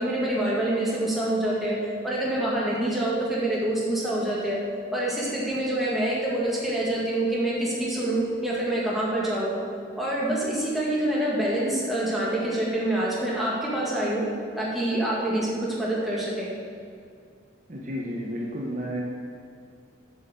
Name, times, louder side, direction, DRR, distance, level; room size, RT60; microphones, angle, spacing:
voice 1, 0.0-1.8 2.0-4.6 4.9-9.5 10.0-14.2 14.6-16.5, right 1 dB, ahead, -7 dB, 1.9 m, -26 dB
voice 2, 17.7-19.0, equal, 40° right, -3 dB, 1.0 m, -32 dB
8.0 x 5.6 x 6.7 m, 2.3 s
head